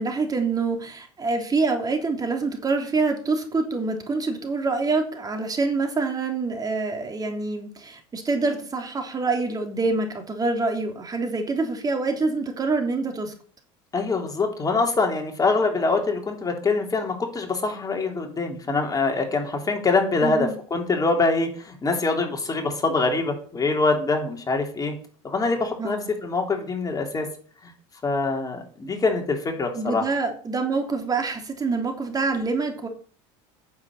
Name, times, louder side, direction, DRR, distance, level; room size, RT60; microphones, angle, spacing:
voice 1, 0.0-13.3 20.2-20.5 25.8-26.1 29.7-32.9, right 3 dB, 25° right, 4 dB, 3.1 m, -26 dB
voice 2, 13.9-24.9 25.2-27.3 27.6-27.7 28.0-30.0, left 3 dB, 25° left, 3 dB, 3.5 m, -24 dB
9.5 x 7.3 x 8.7 m, 0.43 s
supercardioid pair, 95°, 15 cm